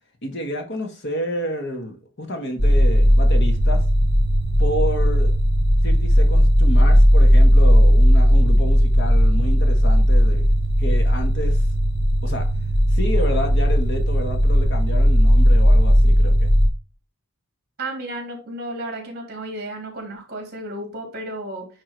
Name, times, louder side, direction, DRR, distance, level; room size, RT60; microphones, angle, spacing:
voice 1, 0.2-3.8 4.6-5.3 5.8-11.6 12.2-12.5 12.9-16.5, equal, 50° left, 1.8 m, -29 dB
sound 1, 2.6-16.7, equal, 85° left, 1.9 m, -16 dB
voice 2, 17.8-21.7, right 1 dB, 45° right, 3.3 m, -33 dB
9.5 x 3.6 x 4.6 m
head